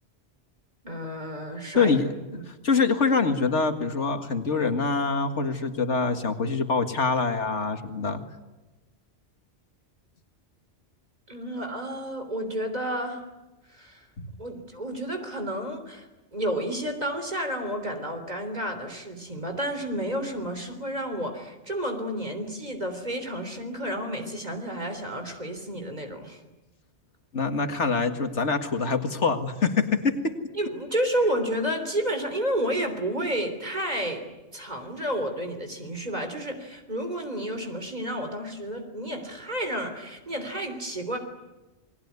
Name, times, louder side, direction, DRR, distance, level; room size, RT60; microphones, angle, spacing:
voice 1, 0.8-2.0 2.3-2.4 11.3-13.2 13.7-14.0 14.4-16.1 16.3-26.4 30.5-41.2, right 1 dB, 35° right, 6 dB, 3.6 m, -31 dB
voice 2, 1.8-2.1 2.5-8.2 14.2-14.3 27.3-30.3, left 4 dB, 85° left, 7 dB, 2.2 m, -25 dB
28.5 x 21.0 x 9.6 m, 1.1 s
omnidirectional pair, 1.2 m